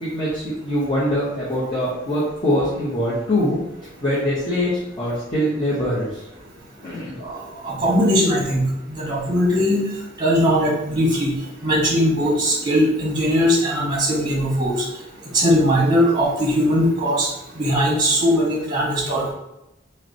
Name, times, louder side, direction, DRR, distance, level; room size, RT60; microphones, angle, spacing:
voice 1, 0.0-3.6 4.0-6.2 6.8-7.2, left 1 dB, 25° left, -8 dB, 0.9 m, -23 dB
voice 2, 7.6-8.6 8.9-9.8 10.2-11.3 11.6-14.8 15.3-17.3 17.6-19.3, equal, 25° right, -3 dB, 1.1 m, -19 dB
5.7 x 2.2 x 2.8 m, 0.89 s
head